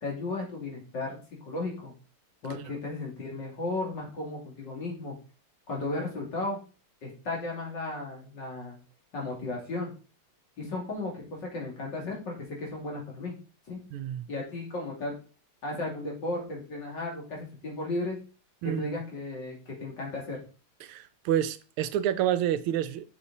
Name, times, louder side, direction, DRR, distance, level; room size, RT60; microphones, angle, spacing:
voice 1, 0.0-1.9 2.4-5.2 5.7-6.6 7.0-8.8 9.1-9.9 10.6-13.3 13.7-13.8 14.3-15.2 15.6-18.2 18.6-20.4, left 2 dB, 55° left, 3.3 m, -35 dB
voice 2, 13.9-14.3 18.6-18.9 20.8-23.0, right 11 dB, 85° right, 1.5 m, -29 dB
7.3 x 6.5 x 4.2 m
omnidirectional pair, 2.4 m